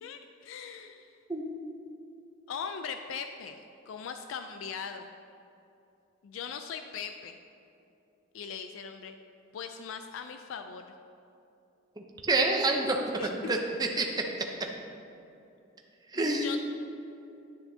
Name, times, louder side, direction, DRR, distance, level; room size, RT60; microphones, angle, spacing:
voice 1, 0.0-1.1 2.5-5.1 6.2-7.4 8.3-9.1 9.5-10.9 13.2-13.6 16.1-16.6, left 6 dB, 85° left, 7 dB, 0.3 m, -40 dB
voice 2, 12.0-13.0 13.5-14.1 16.1-16.4, right 2 dB, 20° right, 1 dB, 0.6 m, -27 dB
10.5 x 6.9 x 2.7 m, 2.8 s
head